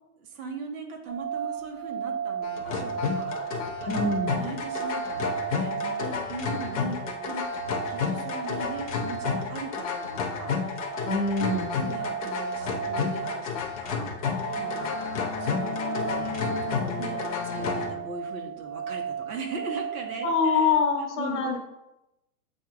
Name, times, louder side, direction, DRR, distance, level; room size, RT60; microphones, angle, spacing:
voice 1, 0.2-4.1 4.4-10.5 11.4-21.6, right 3 dB, 65° right, 3 dB, 1.2 m, -40 dB
sound 1, 1.1-20.7, right 8 dB, 40° right, 0.6 m, -35 dB
sound 2, 2.4-17.9, left 6 dB, 25° left, 0.4 m, -31 dB
voice 2, 3.9-4.4 11.1-11.7 20.2-21.6, left 4 dB, 60° left, 1 dB, 0.9 m, -25 dB
7.9 x 2.7 x 2.4 m, 0.92 s
hypercardioid pair, 155°, 45 cm